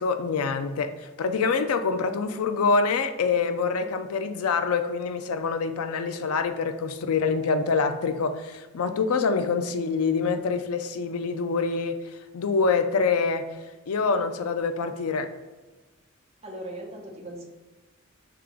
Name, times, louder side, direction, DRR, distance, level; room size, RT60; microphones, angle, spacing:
voice 1, 0.0-13.5 13.9-15.3, left 4 dB, 80° left, 9 dB, 0.4 m, -26 dB
voice 2, 16.4-17.4, right 1 dB, 30° right, -1 dB, 0.8 m, -38 dB
3.6 x 2.9 x 4.7 m, 1.2 s
head